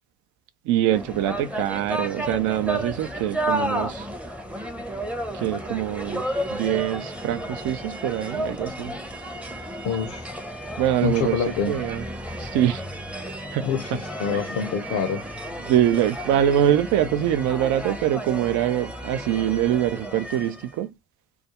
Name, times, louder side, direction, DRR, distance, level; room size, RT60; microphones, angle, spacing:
voice 1, 0.6-4.1 5.3-6.2 6.5-9.0 10.8-11.4 11.7-12.0 12.4-12.8 13.5-13.7 14.3-14.4 15.6-20.9, right 11 dB, 65° right, 0.5 m, -24 dB
sound 1, 0.9-20.7, right 1 dB, 5° right, 0.6 m, -32 dB
voice 2, 9.8-10.3 11.0-11.7 13.6-15.2, left 7 dB, 65° left, 0.6 m, -26 dB
2.4 x 2.2 x 2.8 m
hypercardioid pair, 45°, 32 cm